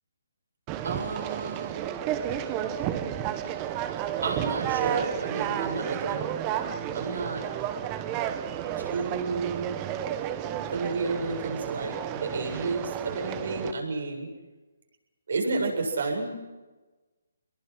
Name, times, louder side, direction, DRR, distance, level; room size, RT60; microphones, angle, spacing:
Conversation, 0.7-13.7, right 10 dB, 20° right, 1.2 m, -32 dB
voice 1, 0.8-1.9 4.2-6.4 6.9-7.5 8.8-9.8 10.7-14.3 15.3-16.4, right 3 dB, 70° right, 3 dB, 8.0 m, -31 dB
27.0 x 22.0 x 6.2 m, 1.2 s
hypercardioid pair, 155°, 0 cm